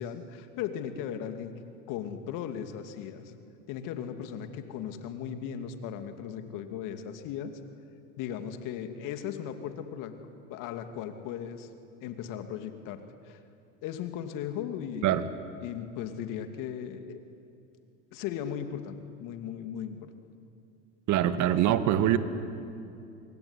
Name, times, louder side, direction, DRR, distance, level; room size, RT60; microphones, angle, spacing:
voice 1, 0.0-3.3 3.7-7.6 8.2-10.2 10.5-11.7 12.0-13.4 13.8-15.3 15.6-17.2 18.1-20.1, left 9 dB, 55° left, 8 dB, 2.7 m, -37 dB
voice 2, 21.1-22.2, right 11 dB, 50° right, 11 dB, 1.9 m, -23 dB
27.0 x 22.0 x 10.0 m, 2.6 s
hypercardioid pair, 100°, 38 cm